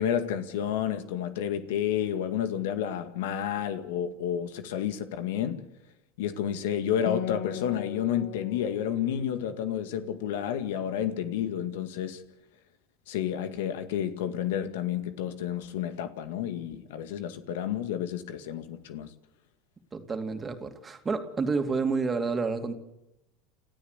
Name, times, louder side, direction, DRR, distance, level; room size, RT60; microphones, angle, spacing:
voice 1, 0.0-5.7 6.2-12.2 13.1-19.1, left 9 dB, 80° left, 2.0 m, -30 dB
Acoustic guitar, 7.1-10.8, left 11 dB, 65° left, 1.2 m, -39 dB
voice 2, 19.9-22.8, right 4 dB, 20° right, 2.7 m, -29 dB
29.5 x 13.5 x 8.3 m
supercardioid pair, 105°, 0 cm